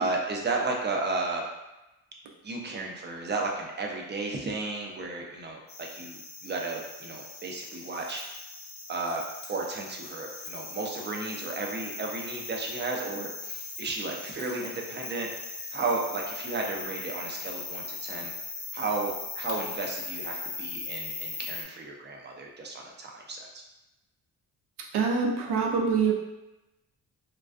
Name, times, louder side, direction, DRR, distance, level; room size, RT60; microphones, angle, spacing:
voice 1, 0.0-1.5 2.4-8.2 8.9-15.3 15.7-18.3 18.7-23.6, right 3 dB, 25° right, 0 dB, 0.4 m, -33 dB
sound 1, 5.7-21.6, left 3 dB, 35° left, 0.6 m, -39 dB
voice 2, 24.9-26.1, right 5 dB, 75° right, 0 dB, 0.6 m, -25 dB
2.4 x 2.2 x 2.4 m, 0.97 s
cardioid pair, 85°, 41 cm